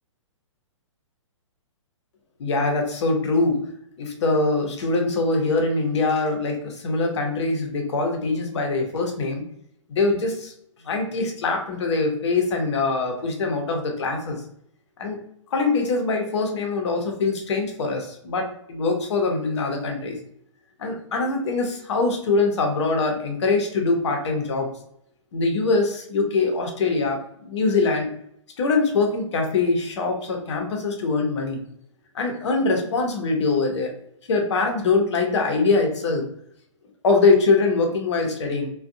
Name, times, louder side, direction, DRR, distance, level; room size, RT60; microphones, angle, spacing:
voice 1, 2.4-3.6 4.0-9.4 9.9-10.5 10.8-14.4 15.0-15.2 15.5-20.2 20.8-24.7 25.3-28.1 28.6-31.6 32.1-33.9 34.3-36.2 37.0-38.7, left 3 dB, 60° left, 2 dB, 0.8 m, -23 dB
2.5 x 2.3 x 2.5 m, 0.71 s
hypercardioid pair, 130°, 16 cm